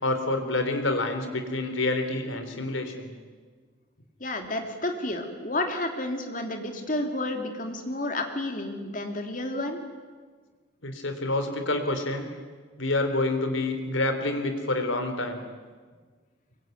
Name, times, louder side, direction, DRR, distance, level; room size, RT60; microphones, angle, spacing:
voice 1, 0.0-3.1 10.8-12.3 12.8-15.4, left 2 dB, 75° left, 7 dB, 3.6 m, -28 dB
voice 2, 4.2-9.8, left 1 dB, 40° left, 5 dB, 2.9 m, -31 dB
24.5 x 23.0 x 9.3 m, 1.5 s
head